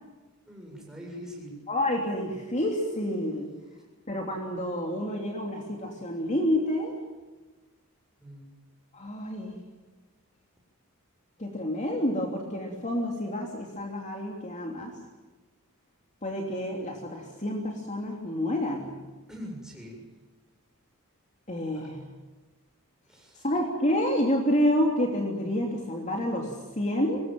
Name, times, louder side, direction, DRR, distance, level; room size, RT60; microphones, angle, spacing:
voice 1, 0.4-1.6 3.7-3.8 8.2-8.5 19.3-20.0 21.7-21.9 23.1-23.5, equal, 5° right, -1 dB, 7.4 m, -43 dB
voice 2, 1.7-3.5 4.1-6.9 8.9-9.5 11.4-14.9 16.2-18.9 21.5-22.0 23.4-27.2, left 1 dB, 35° left, 1 dB, 3.1 m, -28 dB
24.5 x 20.5 x 9.2 m, 1.2 s
head